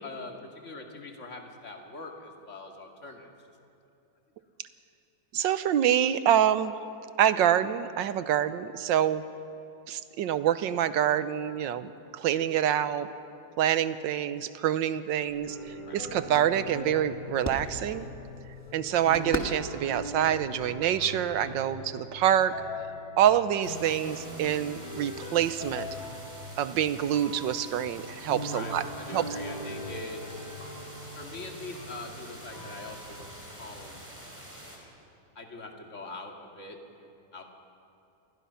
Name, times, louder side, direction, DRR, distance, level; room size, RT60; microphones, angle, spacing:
voice 1, 0.0-3.3 15.9-16.0 28.5-30.5 31.1-34.4 35.4-37.4, left 2 dB, 40° left, 2 dB, 2.4 m, -43 dB
voice 2, 5.3-6.7 7.2-9.2 9.9-13.1 13.6-18.1 18.7-22.5 23.2-25.9 26.6-28.8 29.1-29.3, right 10 dB, 75° right, 13 dB, 1.5 m, -26 dB
sound 1, 15.3-21.6, equal, 10° left, 1.2 m, -41 dB
sound 2, 15.5-34.0, equal, 85° left, 5.1 m, -42 dB
sound 3, 23.6-34.8, equal, 5° right, 3.6 m, -47 dB
28.0 x 21.0 x 5.7 m, 2.7 s
omnidirectional pair, 2.1 m